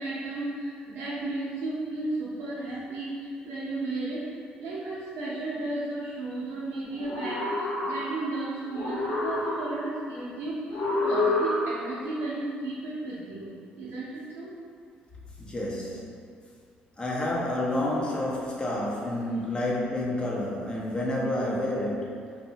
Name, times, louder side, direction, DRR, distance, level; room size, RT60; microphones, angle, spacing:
voice 1, 0.0-4.3 4.6-14.5, right 2 dB, 75° right, -10 dB, 0.5 m, -34 dB
sound 1, 6.9-8.4 8.7-10.0 10.7-12.0, left 2 dB, 80° left, 0.5 m, -28 dB
voice 2, 15.4-16.1 17.0-22.1, left 1 dB, 25° left, -4 dB, 0.6 m, -29 dB
2.6 x 2.1 x 2.7 m, 2.2 s
supercardioid pair, 75°, 4 cm